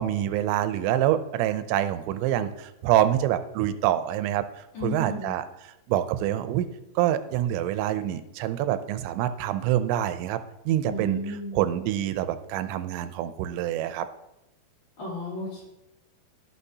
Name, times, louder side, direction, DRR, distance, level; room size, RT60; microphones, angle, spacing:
voice 1, 0.0-4.4 4.8-5.4 5.9-6.7 7.0-10.4 10.7-11.2 11.5-14.1, right 12 dB, 85° right, 11 dB, 2.9 m, -26 dB
voice 2, 4.7-5.3 10.9-11.5 15.0-15.6, left 1 dB, 50° left, -5 dB, 3.6 m, -33 dB
17.5 x 6.3 x 2.8 m, 0.93 s
omnidirectional pair, 5.1 m